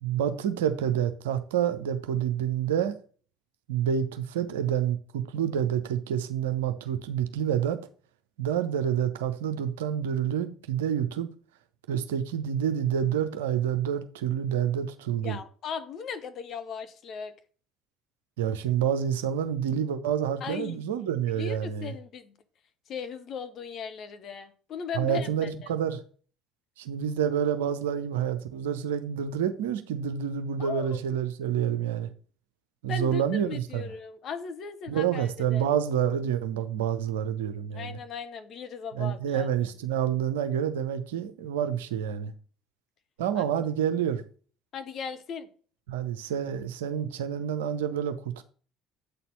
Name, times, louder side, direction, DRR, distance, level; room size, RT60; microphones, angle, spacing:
voice 1, 0.0-2.9 3.7-7.8 8.4-11.3 11.9-15.4 18.4-21.9 24.9-26.0 26.8-32.1 32.8-33.8 34.9-38.0 38.9-42.3 43.2-44.2 45.9-48.4, right 9 dB, 70° right, 0.7 m, -28 dB
voice 2, 15.2-17.3 20.4-22.4 22.9-25.7 30.6-31.0 32.9-35.7 37.7-39.7 43.4-43.5 44.7-45.5, left 6 dB, 45° left, 1.0 m, -38 dB
8.2 x 4.2 x 5.5 m
figure-of-eight pair, 55°, 0 cm